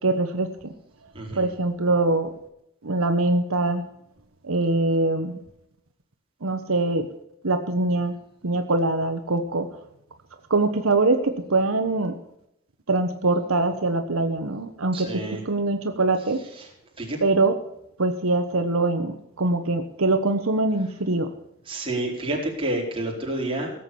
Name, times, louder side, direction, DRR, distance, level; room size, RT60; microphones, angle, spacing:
voice 1, 0.0-0.7 1.3-2.3 2.8-3.8 4.4-5.4 6.4-7.1 7.4-8.1 8.4-9.7 10.5-12.1 12.9-16.4 17.2-17.6 18.0-21.3, right 2 dB, 80° right, 7 dB, 1.2 m, -23 dB
voice 2, 1.1-1.5 14.9-15.4 16.6-16.7 17.0-17.2 21.7-23.7, right 1 dB, 25° right, -2 dB, 4.4 m, -29 dB
17.5 x 8.0 x 7.0 m, 0.78 s
head